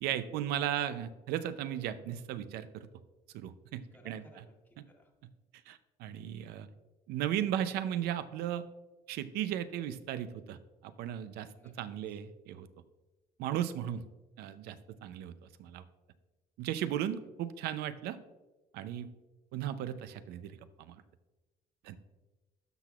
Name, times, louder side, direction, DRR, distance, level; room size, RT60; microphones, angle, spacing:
voice 1, 0.0-2.9 3.3-4.4 5.7-6.7 7.1-8.6 9.1-10.6 10.8-12.7 13.4-14.0 14.4-15.3 15.6-15.8 16.6-18.2 18.7-19.1 19.5-21.0 21.8-22.0, right 11 dB, 85° right, 13 dB, 0.5 m, -36 dB
voice 2, 3.9-5.1 11.6-11.7 12.1-12.2, left 1 dB, 10° left, 0 dB, 1.2 m, -59 dB
12.5 x 6.0 x 2.4 m, 1.1 s
cardioid pair, 105°, 16 cm